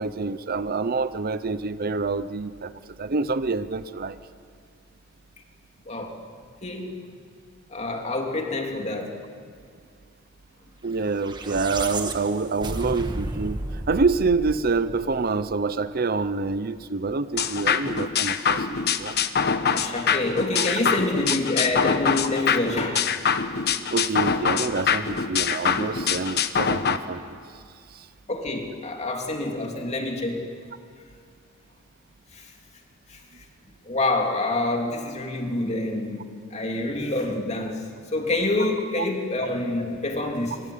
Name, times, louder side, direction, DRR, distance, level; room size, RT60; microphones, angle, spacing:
voice 1, 0.0-2.7 3.0-4.2 10.8-19.2 20.5-20.7 23.9-27.2 27.9-28.1, right 4 dB, 45° right, 13 dB, 0.7 m, -27 dB
voice 2, 5.9-6.2 6.6-7.0 7.7-9.2 19.7-23.2 28.3-30.5 32.3-32.5 33.1-33.5 33.8-40.6, left 2 dB, 35° left, 2 dB, 3.0 m, -27 dB
sound 1, 11.1-15.5, right 2 dB, 20° right, 1.6 m, -33 dB
sound 2, 17.4-27.0, left 6 dB, 50° left, 1.1 m, -24 dB
26.5 x 24.0 x 8.6 m, 2.3 s
head